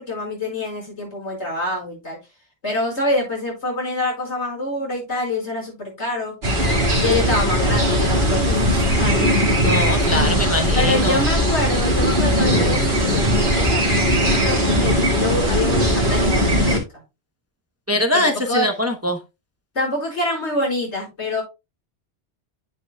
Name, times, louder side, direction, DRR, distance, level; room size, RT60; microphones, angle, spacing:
voice 1, 0.0-2.2 2.6-6.3 6.9-9.3 10.7-16.8 18.1-18.2 18.5-18.7 19.7-21.4, left 2 dB, 85° left, -2 dB, 5.5 m, -26 dB
sound 1, 6.4-16.8, equal, 65° right, 2.3 m, -19 dB
voice 2, 9.6-11.2 17.9-19.2, left 1 dB, 15° right, 4 dB, 0.8 m, -22 dB
9.4 x 9.1 x 2.3 m, 0.25 s
omnidirectional pair, 1.1 m